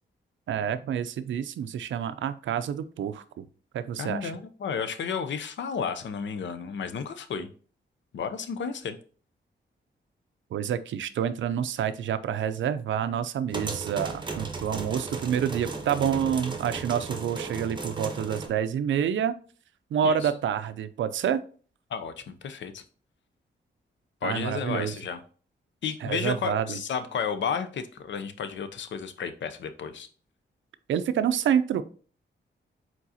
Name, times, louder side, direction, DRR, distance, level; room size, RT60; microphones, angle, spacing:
voice 1, 0.5-3.5 3.7-4.3 10.5-19.3 19.9-21.4 24.2-24.9 26.0-26.8 30.9-31.8, right 8 dB, 80° right, 12 dB, 0.4 m, -28 dB
voice 2, 4.0-7.5 8.1-9.0 20.0-20.3 21.9-22.8 24.2-25.2 25.8-30.1, left 6 dB, 70° left, 10 dB, 0.6 m, -32 dB
sound 1, 13.5-18.5, right 3 dB, 25° right, 0.8 m, -35 dB
4.7 x 3.8 x 2.7 m, 0.41 s
cardioid pair, 95°, 19 cm